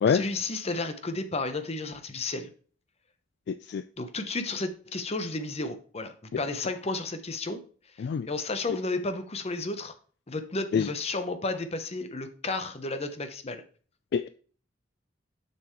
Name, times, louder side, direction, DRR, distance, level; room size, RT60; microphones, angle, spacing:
voice 1, 0.1-2.5 4.0-7.6 8.3-9.9 10.3-13.6, left 3 dB, 35° left, 0.9 m, -32 dB
voice 2, 3.5-3.8 8.0-8.3 10.7-10.9 14.1-14.3, left 6 dB, 60° left, 0.3 m, -25 dB
6.9 x 6.8 x 3.1 m
head